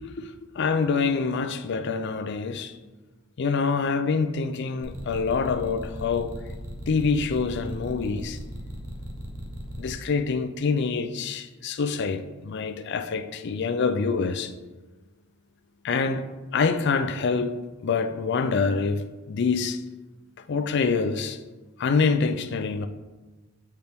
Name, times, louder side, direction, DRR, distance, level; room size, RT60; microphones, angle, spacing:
voice 1, 0.6-2.8 3.4-6.3 6.9-8.4 9.8-14.5 15.8-16.3 16.5-17.6 17.8-19.8 20.5-21.4 21.8-22.9, left 5 dB, 55° left, 0.4 m, -26 dB
sound 1, 4.8-9.9, equal, 85° right, 1.1 m, -37 dB
7.9 x 4.4 x 3.4 m
head